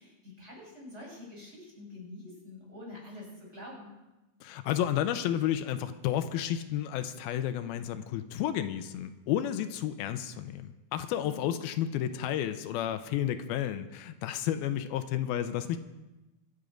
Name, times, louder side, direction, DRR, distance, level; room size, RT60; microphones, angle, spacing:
voice 1, 0.0-3.9, left 1 dB, 15° right, -4 dB, 6.5 m, -46 dB
voice 2, 4.4-15.8, left 11 dB, 85° left, 10 dB, 2.6 m, -31 dB
24.5 x 8.3 x 5.2 m, 1.0 s
omnidirectional pair, 4.3 m